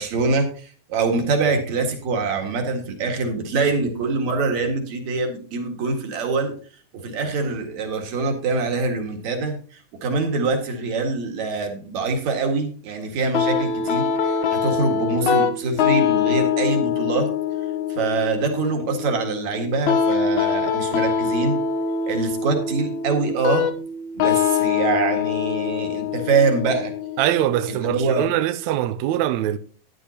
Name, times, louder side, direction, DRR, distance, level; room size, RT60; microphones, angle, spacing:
voice 1, 0.0-6.5 6.9-9.6 10.0-17.3 17.9-21.6 22.1-23.7 24.1-26.9 27.7-28.3, right 4 dB, 60° right, 3.0 m, -24 dB
sound 1, 13.3-28.3, left 6 dB, 70° left, 2.2 m, -24 dB
voice 2, 27.2-29.6, right 12 dB, 80° right, 1.6 m, -22 dB
13.5 x 10.5 x 2.8 m
omnidirectional pair, 3.9 m